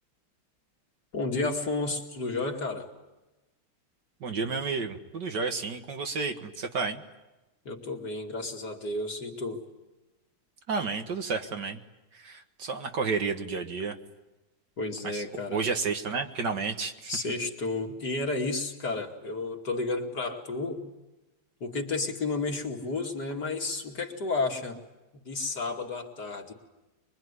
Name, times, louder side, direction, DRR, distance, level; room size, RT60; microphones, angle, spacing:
voice 1, 1.1-2.9 7.6-9.6 14.8-15.6 17.1-20.8 21.6-24.8 25.1-26.5, left 3 dB, 50° left, 2 dB, 3.0 m, -32 dB
voice 2, 4.2-7.0 10.7-11.8 12.2-14.0 15.1-15.2 15.5-17.1, right 4 dB, 55° right, 6 dB, 2.1 m, -31 dB
24.0 x 24.0 x 9.7 m, 1.1 s
omnidirectional pair, 2.3 m